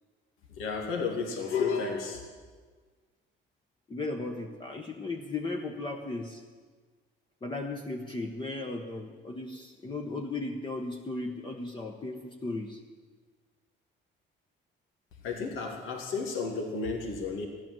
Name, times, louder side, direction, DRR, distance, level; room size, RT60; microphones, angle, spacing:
voice 1, 0.6-2.2 15.2-17.5, left 5 dB, 85° left, 2 dB, 2.2 m, -32 dB
voice 2, 3.9-6.4 7.4-12.8, left 2 dB, 25° left, 2 dB, 1.1 m, -36 dB
14.0 x 10.5 x 7.6 m, 1.5 s
cardioid pair, 120°, 20 cm